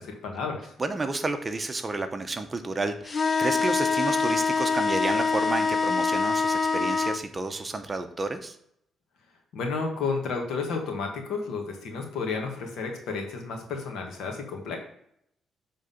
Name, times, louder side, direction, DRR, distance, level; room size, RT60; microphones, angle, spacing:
voice 1, 0.0-0.7 9.5-14.8, left 4 dB, 75° left, 2 dB, 1.6 m, -32 dB
voice 2, 0.8-8.6, right 3 dB, 25° right, 8 dB, 0.8 m, -31 dB
sound 1, 3.1-7.2, left 4 dB, 40° left, 0.4 m, -25 dB
7.4 x 3.8 x 5.5 m, 0.73 s
cardioid pair, 90°, 0 cm